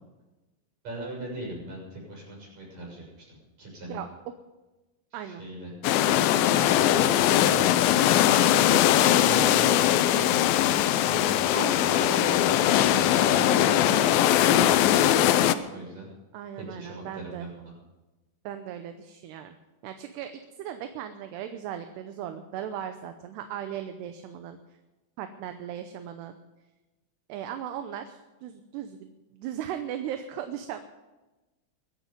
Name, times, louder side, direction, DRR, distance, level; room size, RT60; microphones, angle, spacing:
voice 1, 0.8-4.0 5.1-5.7 6.3-7.7 8.5-8.8 9.2-10.7 11.0-11.4 11.6-12.5 12.8-14.7 15.7-16.1 16.7-17.7, right 1 dB, 40° right, -3 dB, 7.9 m, -39 dB
sound 1, 5.8-15.5, left 12 dB, 85° left, 2.0 m, -21 dB
voice 2, 11.5-12.6 13.2-13.6 16.3-17.5 18.4-19.5 19.8-24.6 25.2-26.3 27.3-30.8, right 10 dB, 75° right, 8 dB, 2.8 m, -37 dB
22.0 x 10.5 x 5.3 m, 1.1 s
omnidirectional pair, 5.1 m